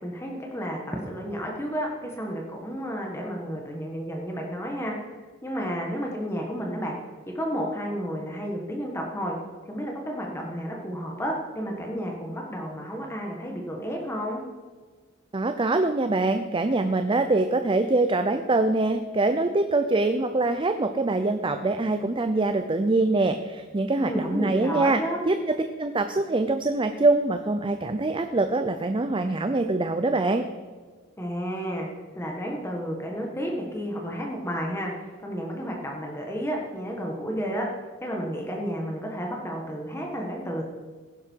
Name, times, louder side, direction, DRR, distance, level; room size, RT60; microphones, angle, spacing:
voice 1, 0.0-4.9 5.4-7.0 7.3-9.3 9.7-14.4 24.0-25.2 31.2-31.9 32.1-37.6 38.0-40.6, equal, 15° left, -1 dB, 1.5 m, -31 dB
voice 2, 15.3-25.0 25.3-30.5, right 2 dB, 25° right, 8 dB, 0.6 m, -24 dB
16.0 x 11.0 x 4.6 m, 1.5 s
head